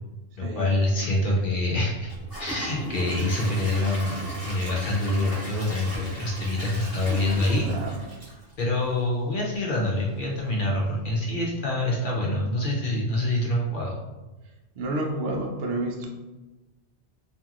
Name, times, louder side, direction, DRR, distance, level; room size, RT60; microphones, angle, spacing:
voice 1, 0.4-2.1 2.4-4.2 4.4-7.7 8.6-14.0, left 1 dB, 60° left, -3 dB, 0.6 m, -26 dB
Gurgling / Toilet flush / Trickle dribble, 2.0-9.1 9.5-9.6 10.1-10.2, equal, 20° right, 0.9 m, -37 dB
voice 2, 7.6-8.0 14.8-16.1, right 1 dB, 85° right, 1 dB, 0.9 m, -30 dB
2.8 x 2.5 x 2.3 m, 1.1 s
omnidirectional pair, 1.2 m